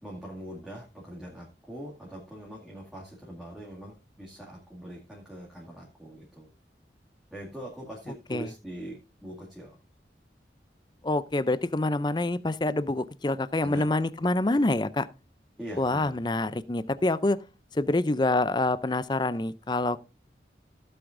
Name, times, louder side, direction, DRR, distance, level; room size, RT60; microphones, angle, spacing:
voice 1, 0.0-6.5 7.3-9.8 13.6-13.9 15.6-16.2, right 1 dB, 5° right, 2.2 m, -42 dB
voice 2, 11.0-15.1 15.8-17.4 17.7-20.0, left 2 dB, 25° left, 0.5 m, -26 dB
16.0 x 7.9 x 2.6 m
head